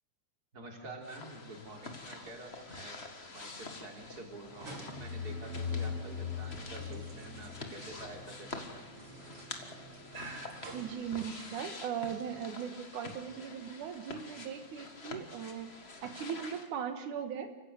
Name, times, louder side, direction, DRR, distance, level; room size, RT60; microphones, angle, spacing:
voice 1, 0.5-3.0 3.3-8.9, right 2 dB, 30° right, 2 dB, 3.8 m, -48 dB
sound 1, 1.0-16.7, left 3 dB, 30° left, 1.3 m, -47 dB
sound 2, 4.4-11.6, right 3 dB, 50° right, 4.0 m, -50 dB
sound 3, 4.6-8.3, left 6 dB, 70° right, 5.1 m, -40 dB
voice 2, 10.7-15.7 16.0-17.5, right 8 dB, 90° right, 7 dB, 3.0 m, -39 dB
29.0 x 15.5 x 8.2 m, 1.1 s
omnidirectional pair, 3.5 m